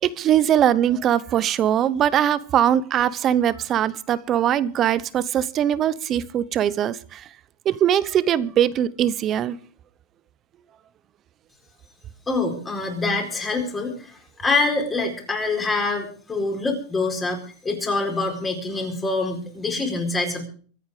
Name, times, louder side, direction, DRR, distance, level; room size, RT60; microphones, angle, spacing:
voice 1, 0.0-7.3 7.6-9.6, right 10 dB, 30° right, 0.8 m, -21 dB
voice 2, 12.3-20.5, left 3 dB, 15° left, 4.5 m, -25 dB
24.0 x 8.8 x 5.0 m
supercardioid pair, 145°, 0 cm